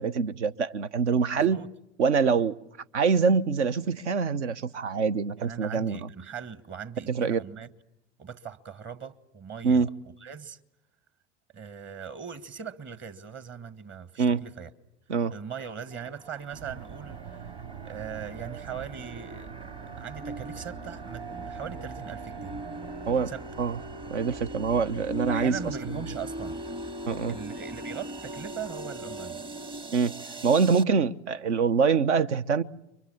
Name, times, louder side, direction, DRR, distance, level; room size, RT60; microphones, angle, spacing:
voice 1, 0.0-1.6 2.0-2.5 2.9-6.1 7.1-7.4 9.6-9.9 14.2-14.4 15.1-15.3 23.1-23.3 23.6-23.8 24.1-25.6 27.1-27.4 29.9-30.1 30.4-32.6, right 5 dB, 70° right, 1.0 m, -24 dB
voice 2, 1.3-1.7 5.4-7.7 8.2-9.9 10.2-10.6 11.5-14.7 15.3-17.5 17.8-22.5 23.3-23.4 25.3-26.6 27.3-29.4, right 7 dB, 30° right, 1.6 m, -40 dB
sound 1, 15.9-30.8, right 1 dB, 15° right, 0.9 m, -40 dB
sound 2, 16.5-25.9, right 7 dB, 55° right, 1.3 m, -45 dB
30.0 x 24.0 x 7.1 m
figure-of-eight pair, 85°, 35 cm